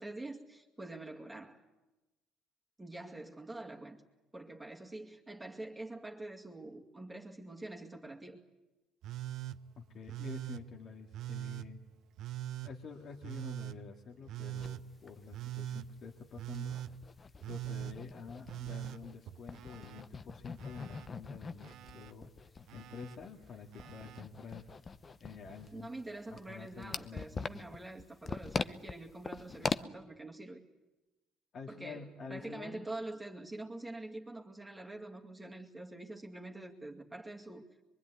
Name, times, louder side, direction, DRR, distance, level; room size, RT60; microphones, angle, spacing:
voice 1, 0.0-1.6 2.8-4.0 4.3-8.4 25.7-30.6 31.7-37.7, right 2 dB, 10° right, 2.3 m, -45 dB
Telephone, 9.0-9.6 10.1-10.6 11.1-11.7 12.2-12.7 13.2-13.8 14.3-14.8 15.3-15.9 16.4-16.9 17.4-18.0 18.5-20.0 20.3-21.1 21.6-22.1 22.7-23.2 23.7-24.2 25.4-25.5, right 13 dB, 65° right, 0.8 m, -42 dB
voice 2, 9.8-11.8 12.6-16.8 17.5-22.3 22.7-24.7 25.2-25.9 26.3-27.5 31.5-32.9, left 5 dB, 50° left, 2.3 m, -48 dB
sound 1, 14.6-14.7 15.1-15.2 15.4-15.5 16.1-19.2 19.5-29.8, left 4 dB, 30° left, 0.9 m, -42 dB
23.5 x 23.5 x 9.6 m
cardioid pair, 100°, 0 cm